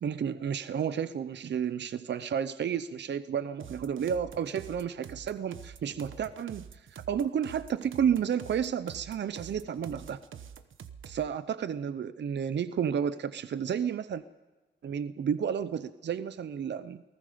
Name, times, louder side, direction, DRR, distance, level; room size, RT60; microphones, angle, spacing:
voice 1, 0.0-10.2 11.1-14.2 14.8-17.0, right 8 dB, 60° right, 13 dB, 0.7 m, -31 dB
sound 1, 3.6-11.3, right 8 dB, 80° right, 1.1 m, -46 dB
29.0 x 19.0 x 5.1 m, 1.2 s
wide cardioid pair, 165°, 20 cm